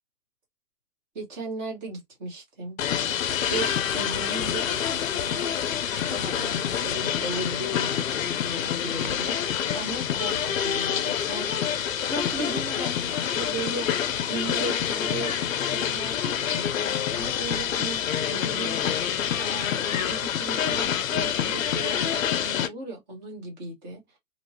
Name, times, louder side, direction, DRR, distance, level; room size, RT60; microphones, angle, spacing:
voice 1, 1.1-2.8 3.5-5.7 5.9-11.5 12.0-15.4 15.6-16.7 17.1-18.8 19.4-24.0, right 2 dB, 30° right, 1.4 m, -36 dB
sound 1, 2.8-22.7, left 9 dB, 60° left, 0.5 m, -27 dB
3.0 x 2.5 x 2.7 m
hypercardioid pair, 160°, 47 cm